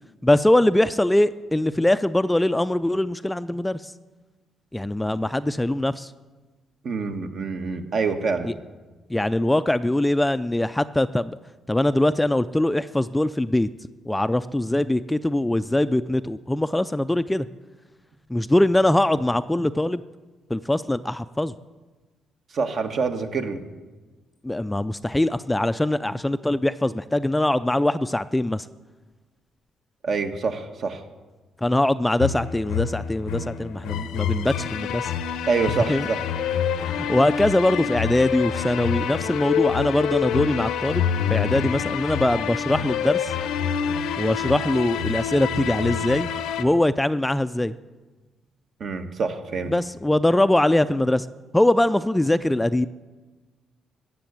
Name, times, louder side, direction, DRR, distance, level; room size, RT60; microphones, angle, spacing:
voice 1, 0.2-3.9 4.7-6.1 8.4-8.5 9.1-11.4 11.7-13.7 14.1-17.5 18.3-20.0 20.5-21.5 24.4-28.7 31.6-35.1 35.9-36.1 37.0-43.3 44.2-46.3 46.6-47.7 49.7-51.3 51.5-52.9, left 1 dB, 10° left, 13 dB, 0.4 m, -22 dB
voice 2, 6.8-8.5 22.5-23.6 30.0-31.0 35.5-36.2 48.8-49.7, right 4 dB, 55° right, 6 dB, 1.4 m, -26 dB
sound 1, 32.2-46.6, left 8 dB, 85° left, 0.7 m, -27 dB
14.0 x 6.9 x 9.2 m, 1.3 s
cardioid pair, 90°, 0 cm